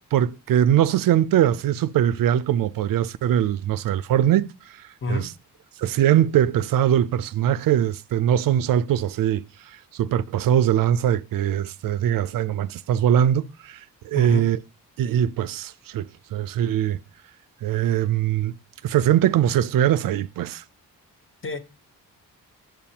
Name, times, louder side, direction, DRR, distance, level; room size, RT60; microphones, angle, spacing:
voice 1, 0.1-4.8 5.1-5.3 5.8-14.6 15.0-17.0 17.6-18.5 18.8-20.6, right 10 dB, 70° right, 0.5 m, -22 dB
voice 2, 5.0-5.3 14.1-14.5 21.4-21.6, left 2 dB, 35° left, 0.9 m, -28 dB
8.7 x 7.6 x 2.8 m
wide cardioid pair, 125°, 35 cm